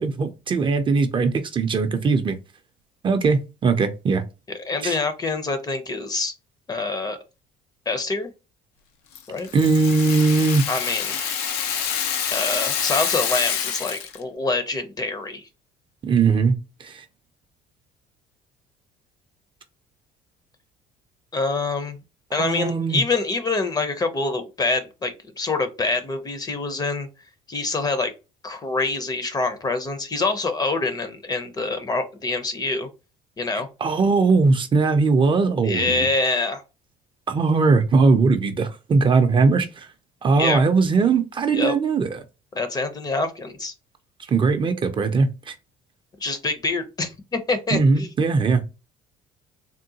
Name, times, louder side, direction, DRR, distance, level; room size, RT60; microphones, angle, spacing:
voice 1, 0.0-2.4 3.0-4.2 4.8-5.0 9.5-10.7 16.0-16.5 16.8-17.0 22.4-23.0 33.8-36.1 37.3-39.9 40.2-42.2 44.3-45.5 47.7-48.6, right 4 dB, 30° right, 0.4 m, -20 dB
voice 2, 4.6-6.3 6.7-7.2 7.9-8.3 9.3-9.5 10.7-11.1 12.3-15.4 21.3-22.0 22.3-27.1 27.5-28.1 28.4-32.9 33.4-33.7 35.6-36.6 40.4-40.6 41.5-41.7 42.5-43.7 46.2-48.1, left 3 dB, 25° left, 0.6 m, -25 dB
Rattle (instrument), 9.1-14.2, left 8 dB, 90° left, 0.5 m, -27 dB
3.6 x 2.2 x 2.7 m
cardioid pair, 115°, 16 cm